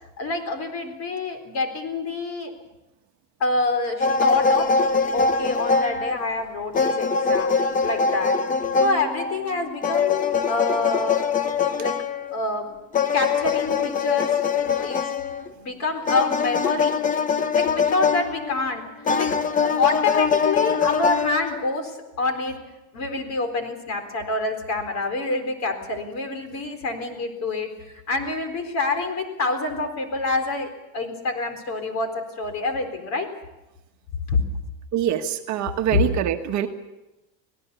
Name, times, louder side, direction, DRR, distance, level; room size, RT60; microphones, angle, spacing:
voice 1, 0.2-2.5 3.4-4.7 5.1-8.4 8.8-11.2 11.8-12.0 12.3-12.8 13.1-15.1 15.6-17.0 17.5-18.9 19.2-22.6 22.9-27.7 28.1-33.3 34.3-34.4 35.9-36.0, left 3 dB, 35° left, 7 dB, 4.2 m, -27 dB
sound 1, 4.0-6.4 6.7-12.4 12.9-15.5 16.1-18.7 19.0-21.6, left 5 dB, 20° left, 0.8 m, -23 dB
voice 2, 34.9-36.7, right 10 dB, 40° right, 5 dB, 1.4 m, -24 dB
25.5 x 18.5 x 7.0 m, 1.0 s
cardioid pair, 155°, 44 cm